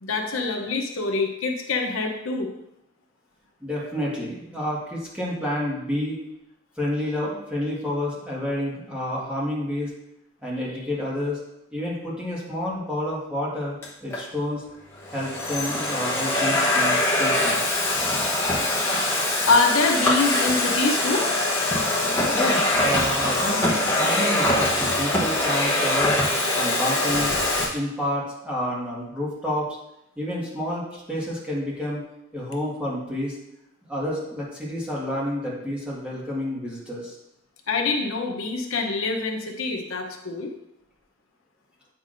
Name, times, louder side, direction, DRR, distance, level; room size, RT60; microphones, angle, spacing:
voice 1, 0.0-2.5 19.5-21.2 37.7-40.5, left 3 dB, 75° left, 3 dB, 0.8 m, -24 dB
voice 2, 3.6-6.2 6.8-9.9 10.4-11.4 11.7-14.6 15.1-17.7 22.3-26.2 26.5-27.3 27.7-29.7 30.2-32.0 32.3-33.4 33.9-37.1, left 1 dB, 5° right, -6 dB, 1.6 m, -29 dB
Domestic sounds home sounds, 13.8-14.2 14.9-27.6, left 1 dB, 10° left, 0.9 m, -23 dB
8.1 x 6.0 x 2.6 m, 0.85 s
head